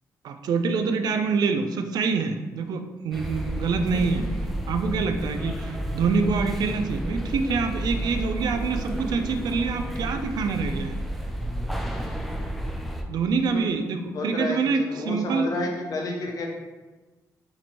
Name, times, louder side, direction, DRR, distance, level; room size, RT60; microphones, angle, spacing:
voice 1, 0.2-4.3 4.7-11.0 13.1-15.5, right 4 dB, 70° right, 7 dB, 0.3 m, -26 dB
sound 1, 3.1-13.0, equal, ahead, 0.4 m, -31 dB
voice 2, 14.1-16.5, left 2 dB, 55° left, 0 dB, 0.7 m, -31 dB
2.9 x 2.6 x 4.3 m, 1.2 s
cardioid pair, 115°, 7 cm